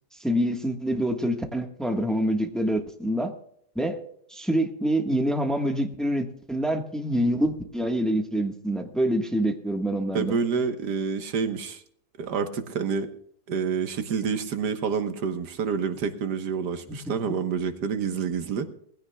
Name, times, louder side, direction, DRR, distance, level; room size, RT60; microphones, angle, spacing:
voice 1, 0.2-3.3 3.7-4.0 4.3-10.4 17.2-17.3, right 1 dB, ahead, 4 dB, 1.2 m, -26 dB
voice 2, 10.1-11.8 12.2-13.1 13.5-18.7, right 6 dB, 75° right, 8 dB, 1.8 m, -28 dB
20.5 x 16.0 x 2.3 m, 0.67 s
omnidirectional pair, 1.8 m